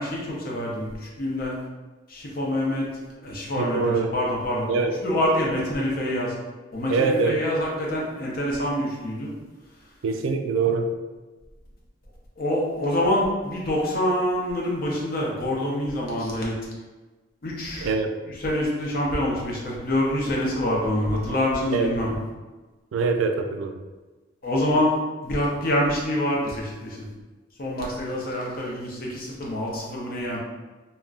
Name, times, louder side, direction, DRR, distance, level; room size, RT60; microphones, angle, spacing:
voice 1, 0.0-1.6 2.1-4.7 5.0-6.3 6.7-9.3 12.4-16.5 17.4-17.9 18.2-22.2 24.4-27.1 27.6-30.4, left 1 dB, 45° left, -3 dB, 0.5 m, -26 dB
voice 2, 3.6-4.1 4.7-4.9 6.9-7.4 10.0-10.9 17.8-18.1 21.7-21.9 22.9-23.7, right 4 dB, 75° right, 6 dB, 0.3 m, -23 dB
3.5 x 2.1 x 2.3 m, 1.2 s
head